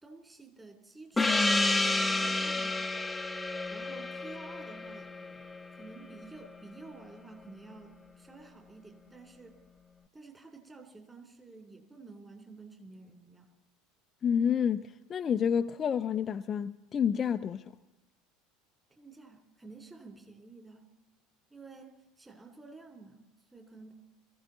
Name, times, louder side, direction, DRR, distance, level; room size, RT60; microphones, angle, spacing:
voice 1, 0.0-2.8 3.7-5.5 5.7-9.6 10.1-13.5 18.9-20.9 21.5-23.9, right 3 dB, 15° right, 3.3 m, -51 dB
Gong, 1.2-6.2, left 2 dB, 10° left, 0.9 m, -30 dB
voice 2, 14.2-17.8, left 8 dB, 35° left, 0.5 m, -29 dB
22.5 x 14.5 x 4.0 m
figure-of-eight pair, 70°, 0 cm